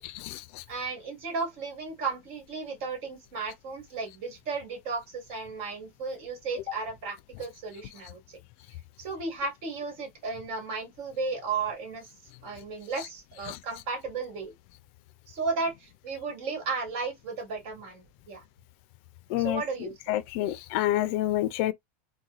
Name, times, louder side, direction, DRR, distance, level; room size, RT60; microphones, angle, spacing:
voice 1, 0.0-0.6 13.5-13.6 19.3-21.7, left 14 dB, 60° left, 0.5 m, -29 dB
voice 2, 0.7-8.4 9.0-12.1 12.4-14.5 15.3-18.4 19.4-19.9, right 4 dB, 60° right, 1.9 m, -34 dB
4.1 x 2.3 x 2.4 m
supercardioid pair, 130°, 8 cm